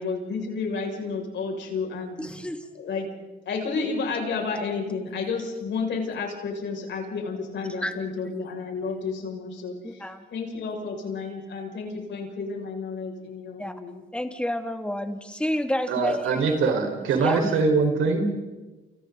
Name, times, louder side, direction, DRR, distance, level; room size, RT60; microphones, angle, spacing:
voice 1, 0.0-2.1 2.8-3.1 3.5-9.8 10.3-14.0, left 4 dB, 65° left, 1 dB, 6.8 m, -31 dB
voice 2, 2.2-2.7 7.8-8.0 9.8-10.3 13.6-13.7 14.1-16.7 17.2-17.4, left 1 dB, 5° left, 5 dB, 2.7 m, -30 dB
voice 3, 15.9-18.2, right 4 dB, 80° right, 3 dB, 5.2 m, -23 dB
29.5 x 29.5 x 4.2 m, 1.2 s
cardioid pair, 90°, 20 cm